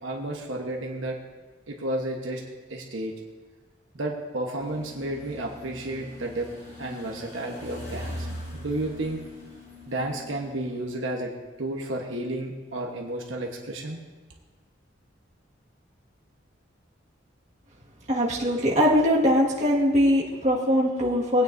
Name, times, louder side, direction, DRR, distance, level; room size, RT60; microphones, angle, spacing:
voice 1, 0.0-1.2 1.7-2.4 2.7-3.1 3.9-6.5 6.8-8.3 8.5-9.2 9.9-11.3 11.6-14.0, right 1 dB, 80° right, 0 dB, 1.2 m, -32 dB
sound 1, 4.6-10.8, left 1 dB, 45° left, 3.7 m, -41 dB
voice 2, 18.1-21.4, equal, 35° right, -5 dB, 1.8 m, -21 dB
19.5 x 9.2 x 2.7 m, 1.3 s
head